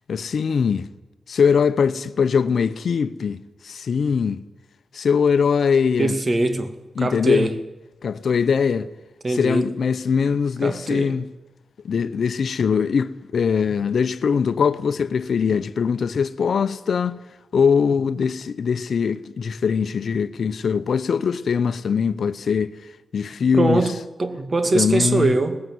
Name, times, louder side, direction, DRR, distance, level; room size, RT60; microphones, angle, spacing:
voice 1, 0.1-0.9 1.3-3.4 3.6-4.4 4.9-6.1 7.0-7.5 8.0-8.9 9.3-11.3 11.8-17.2 17.5-22.7 23.1-23.8 24.7-25.3, left 6 dB, 75° left, 0.8 m, -21 dB
voice 2, 6.0-6.7 7.0-7.6 9.2-9.7 10.6-11.1 23.5-25.6, right 2 dB, 40° right, 2.2 m, -22 dB
19.0 x 15.5 x 9.6 m
cardioid pair, 70°, 0 cm